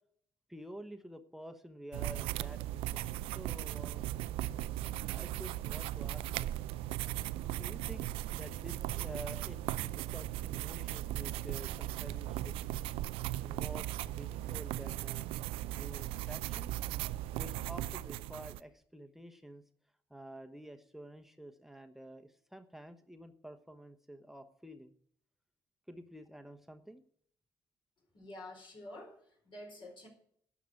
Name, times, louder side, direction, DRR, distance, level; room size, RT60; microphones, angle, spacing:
voice 1, 0.5-4.1 5.1-6.5 7.4-12.5 13.4-15.3 15.7-16.7 17.4-19.6 20.1-24.9 25.9-27.0, right 1 dB, 5° right, 6 dB, 1.1 m, -50 dB
sound 1, 1.9-18.6, right 14 dB, 65° right, 0.4 m, -38 dB
sound 2, 3.3-10.3 11.0-13.5, right 6 dB, 85° right, 1.5 m, -53 dB
voice 2, 28.1-30.1, left 1 dB, 50° left, 0 dB, 4.6 m, -49 dB
11.5 x 6.0 x 8.6 m, 0.62 s
hypercardioid pair, 50°, 10 cm